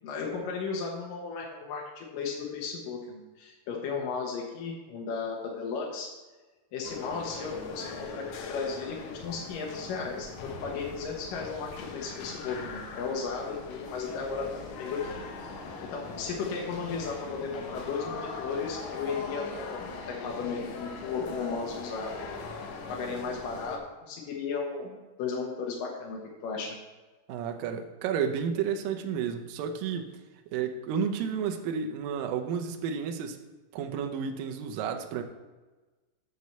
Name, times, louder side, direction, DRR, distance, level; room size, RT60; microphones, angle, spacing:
voice 1, 0.0-6.1 6.7-14.5 14.8-15.2 15.9-22.1 22.9-26.8, left 5 dB, 70° left, -2 dB, 2.2 m, -35 dB
sound 1, 6.8-23.8, left 4 dB, 85° left, 3.2 m, -40 dB
voice 2, 27.3-30.1 30.5-33.4 33.7-35.2, right 7 dB, 75° right, 4 dB, 2.1 m, -31 dB
8.3 x 4.7 x 6.7 m, 1.2 s
omnidirectional pair, 4.9 m